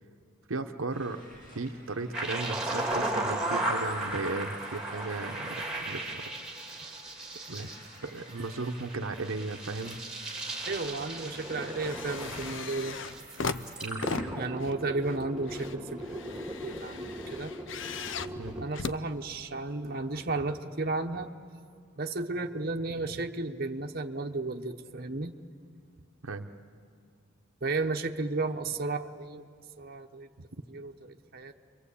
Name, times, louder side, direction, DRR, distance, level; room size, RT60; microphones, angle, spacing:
voice 1, 0.5-1.2 1.5-6.2 6.8-6.9 7.5-7.7 8.0-10.0 13.8-14.1 18.4-18.7 26.2-26.5, right 3 dB, 70° right, 5 dB, 0.9 m, -36 dB
sound 1, 0.9-14.3, equal, 40° left, 7.8 m, -52 dB
sound 2, 2.1-18.6, right 1 dB, 5° right, 2.3 m, -36 dB
sound 3, 9.3-10.1 10.4-19.8 20.6-20.7, left 4 dB, 60° left, 0.6 m, -39 dB
voice 2, 10.6-13.0 14.4-16.2 16.6-17.5 18.6-21.3 22.0-25.4 27.6-29.4 29.8-30.3 30.7-31.5, right 3 dB, 45° right, 3 dB, 1.0 m, -33 dB
30.0 x 23.5 x 8.5 m, 2.2 s
head